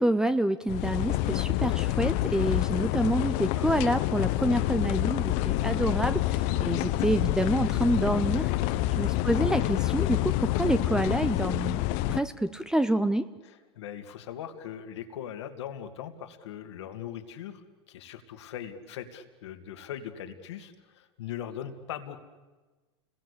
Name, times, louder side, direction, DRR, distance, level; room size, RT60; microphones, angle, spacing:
voice 1, 0.0-8.5 9.0-11.8 12.1-13.3, right 1 dB, 5° right, 12 dB, 0.9 m, -27 dB
sound 1, 0.7-12.2, left 16 dB, 55° left, 1.1 m, -27 dB
voice 2, 13.4-22.2, left 9 dB, 75° left, 7 dB, 2.5 m, -40 dB
30.0 x 21.0 x 8.5 m, 1.3 s
hypercardioid pair, 105°, 15 cm